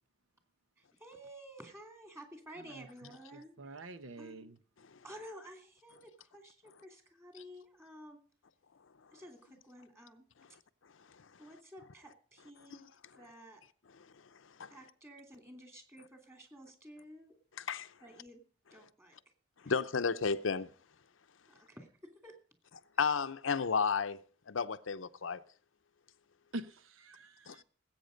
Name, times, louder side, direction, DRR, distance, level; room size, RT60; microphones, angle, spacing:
voice 1, 1.0-3.8 4.2-4.5 5.0-8.2 9.1-10.2 11.4-12.9 13.1-13.6 14.7-17.3 18.0-18.4 18.7-19.1 19.6-19.7 21.5-22.3, equal, 15° right, 2.7 m, -52 dB
voice 2, 3.3-4.6 26.5-27.6, right 2 dB, 80° right, 0.9 m, -46 dB
voice 3, 17.6-17.9 19.7-20.7 23.0-24.2 24.5-25.4 27.5-27.6, left 5 dB, 75° left, 0.7 m, -32 dB
19.0 x 8.7 x 5.2 m
head